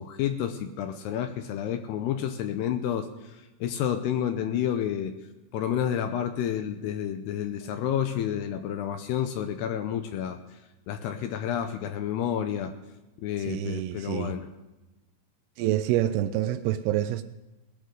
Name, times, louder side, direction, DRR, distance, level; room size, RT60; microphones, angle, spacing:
voice 1, 0.0-5.1 5.5-10.6 10.9-12.7 13.2-14.5, left 9 dB, 80° left, 2.6 m, -30 dB
voice 2, 13.5-14.3 15.6-17.2, right 13 dB, 85° right, 2.3 m, -27 dB
20.0 x 12.0 x 3.8 m
omnidirectional pair, 5.1 m